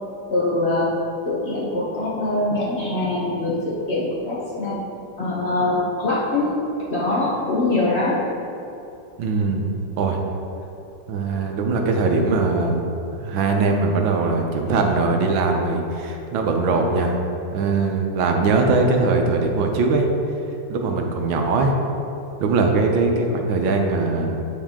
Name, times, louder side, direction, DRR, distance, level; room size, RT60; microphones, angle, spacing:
voice 1, 0.3-0.9 1.3-4.8 5.2-6.5 6.9-8.2, left 2 dB, 45° left, -6 dB, 0.9 m, -23 dB
voice 2, 9.2-9.7 10.0-10.2 11.1-12.8 13.2-17.2 17.5-20.1 20.7-21.7 22.4-24.4, right 3 dB, 80° right, 2 dB, 1.5 m, -21 dB
9.1 x 4.5 x 3.6 m, 2.8 s
omnidirectional pair, 2.1 m